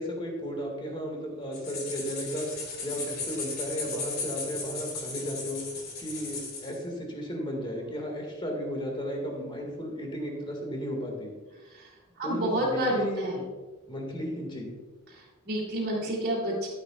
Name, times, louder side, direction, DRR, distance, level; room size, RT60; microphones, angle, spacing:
voice 1, 0.0-2.5 2.8-5.6 6.0-11.3 12.2-13.4 13.9-14.7, equal, 25° left, 1 dB, 2.0 m, -34 dB
sound 1, 1.5-6.8, left 4 dB, 50° left, 2.3 m, -36 dB
voice 2, 12.2-13.4 15.1-16.7, right 1 dB, 50° right, -6 dB, 2.6 m, -29 dB
11.5 x 9.8 x 2.4 m, 1.3 s
head